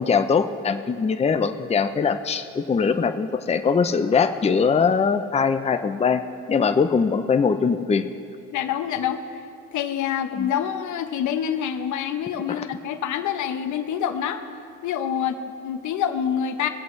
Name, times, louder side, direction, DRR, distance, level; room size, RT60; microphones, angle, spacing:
voice 1, 0.0-6.2 6.5-8.0 10.4-10.5, left 5 dB, 20° left, 8 dB, 0.5 m, -21 dB
voice 2, 8.5-9.4 9.7-14.4 14.8-16.7, left 9 dB, 75° left, 8 dB, 0.9 m, -26 dB
21.5 x 7.7 x 3.2 m, 2.4 s
cardioid pair, 90°, 30 cm